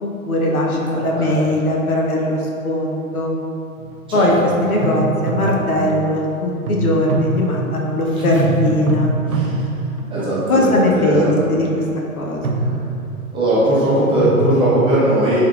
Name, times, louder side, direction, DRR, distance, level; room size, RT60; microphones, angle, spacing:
voice 1, 0.0-3.3 4.1-4.3 4.6-9.1 10.5-11.7 12.2-12.6, left 1 dB, 80° left, -2 dB, 0.8 m, -19 dB
voice 2, 0.9-1.4 4.1-4.5 8.2-8.7 9.2-9.7 10.1-11.5 12.6-12.7 13.3-15.4, right 1 dB, 10° right, -9 dB, 0.7 m, -19 dB
sound 1, 3.8-4.2 4.8-6.0 6.7-8.1 8.4-10.8 11.3-11.6 12.2-13.4 14.2-14.6, right 2 dB, 80° right, 0.6 m, -23 dB
4.6 x 3.7 x 2.4 m, 2.7 s
figure-of-eight pair, 110°, 43 cm